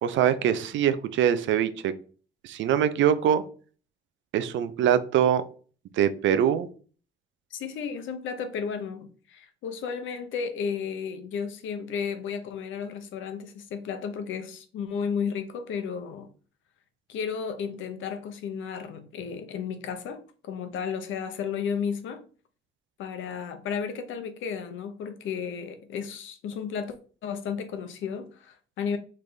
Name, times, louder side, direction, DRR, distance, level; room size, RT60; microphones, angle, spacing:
voice 1, 0.0-1.9 2.4-3.4 4.3-5.4 5.9-6.7, right 9 dB, 75° right, 0.5 m, -23 dB
voice 2, 7.5-16.3 17.1-22.2 23.0-27.0 27.2-29.0, left 6 dB, 80° left, 0.7 m, -33 dB
3.9 x 3.3 x 3.3 m
cardioid pair, 90°, 20 cm